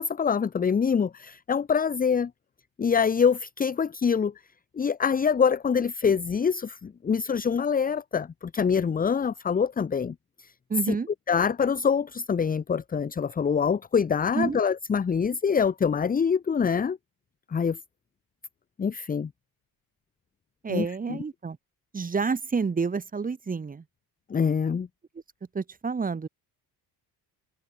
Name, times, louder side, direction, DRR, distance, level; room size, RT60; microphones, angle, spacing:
voice 1, 0.0-2.3 2.8-4.3 4.8-10.1 11.3-17.0 17.5-17.8 18.8-19.3 20.7-21.2 24.3-24.9, left 6 dB, 20° left, 1.3 m, -25 dB
voice 2, 10.7-11.1 14.3-14.7 20.6-21.6 21.9-23.8 25.5-26.3, right 5 dB, 20° right, 4.6 m, -29 dB
cardioid pair, 170°, 40 cm